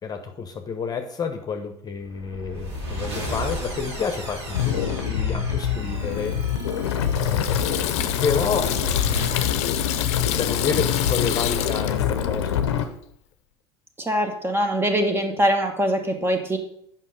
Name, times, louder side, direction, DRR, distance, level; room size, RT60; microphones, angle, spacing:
voice 1, 0.0-6.4 7.2-7.6 8.2-9.5 10.3-12.7, left 5 dB, 30° left, 6 dB, 1.0 m, -29 dB
sound 1, 2.1-9.5, left 1 dB, 90° right, 3.9 m, -34 dB
sound 2, 4.5-12.8, left 8 dB, 90° left, 0.7 m, -25 dB
Water tap faucet / Sink (filling or washing), 6.1-12.9, left 12 dB, 55° left, 0.7 m, -30 dB
voice 2, 14.0-16.6, equal, 15° right, 5 dB, 1.3 m, -23 dB
7.4 x 5.7 x 5.1 m, 0.70 s
hypercardioid pair, 85°, 14 cm